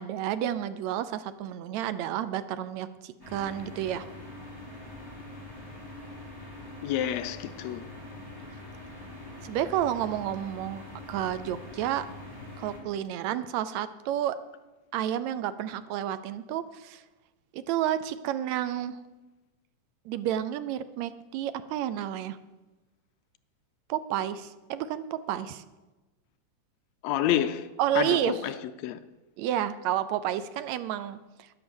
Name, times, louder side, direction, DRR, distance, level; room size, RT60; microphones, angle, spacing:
voice 1, 0.0-4.1 9.4-10.8 11.1-12.1 12.6-14.4 14.9-17.0 17.5-19.0 20.1-22.4 23.9-25.6 27.8-28.3 29.4-31.2, right 11 dB, 80° right, 1.8 m, -30 dB
sound 1, 3.2-12.8, left 2 dB, 5° right, 3.5 m, -44 dB
voice 2, 6.8-7.9 27.0-27.7 28.0-29.0, left 11 dB, 80° left, 1.7 m, -29 dB
12.0 x 10.5 x 7.0 m
omnidirectional pair, 3.3 m